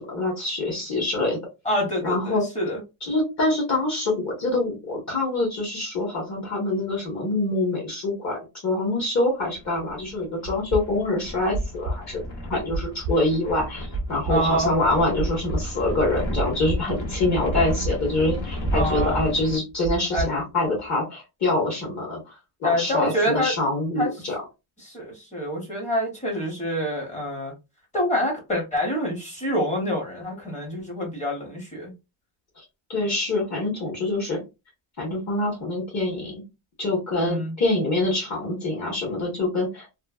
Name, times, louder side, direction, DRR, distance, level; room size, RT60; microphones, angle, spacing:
voice 1, 0.0-1.4 2.0-2.4 3.0-12.2 12.5-22.2 22.6-24.4 32.6-32.7 32.9-34.4 35.0-36.4 36.8-39.8, left 2 dB, 35° left, -2 dB, 1.2 m, -25 dB
voice 2, 1.6-2.8 14.3-14.7 18.7-19.3 20.1-20.3 22.6-23.5 24.0-24.1 24.8-27.5 27.9-31.9 37.2-37.5, equal, 15° left, -1 dB, 0.9 m, -26 dB
sound 1, 9.5-19.6, equal, 70° left, 1.3 m, -33 dB
sound 2, 10.5-20.8, right 1 dB, 20° right, 0.5 m, -30 dB
3.1 x 2.0 x 2.3 m, 0.25 s
cardioid pair, 170°, 47 cm